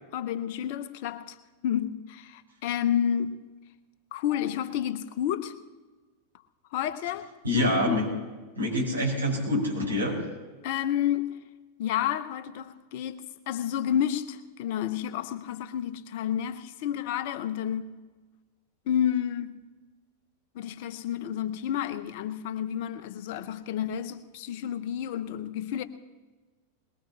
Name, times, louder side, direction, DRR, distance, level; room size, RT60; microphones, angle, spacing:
voice 1, 0.1-1.4 1.6-3.4 4.1-5.5 6.7-8.0 10.6-11.4 11.8-17.9 18.9-19.5 20.5-25.8, left 10 dB, 50° left, 12 dB, 1.0 m, -30 dB
voice 2, 7.4-8.1 8.6-10.2, left 1 dB, 80° right, -3 dB, 5.5 m, -26 dB
22.0 x 21.0 x 3.0 m, 1.3 s
figure-of-eight pair, 90°, 0 cm